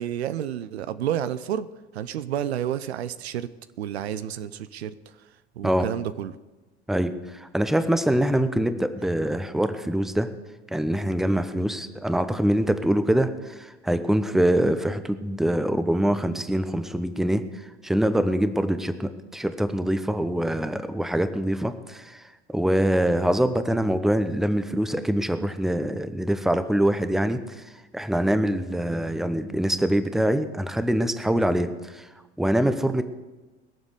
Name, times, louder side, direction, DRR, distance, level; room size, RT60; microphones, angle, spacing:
voice 1, 0.0-3.5 3.8-6.4, right 10 dB, 70° right, 0.7 m, -30 dB
voice 2, 6.9-10.3 10.7-17.4 17.8-22.2 22.5-27.6 27.9-32.1 32.4-33.0, right 1 dB, ahead, 0.9 m, -24 dB
20.5 x 7.2 x 6.6 m
figure-of-eight pair, 70°, 34 cm